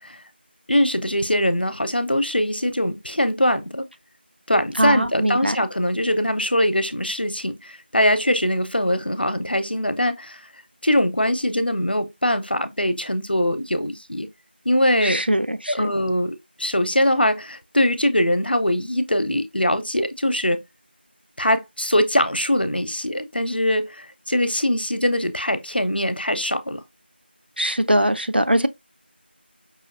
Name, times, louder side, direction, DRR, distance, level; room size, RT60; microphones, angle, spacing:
voice 1, 0.7-3.9 4.5-10.4 10.8-14.3 14.6-15.2 15.7-20.6 21.4-26.8, left 1 dB, 60° left, 0.7 m, -22 dB
voice 2, 4.8-5.6 15.0-15.9 27.6-28.7, right 1 dB, 65° right, 0.7 m, -21 dB
5.6 x 2.7 x 2.5 m
figure-of-eight pair, 180°, 6 cm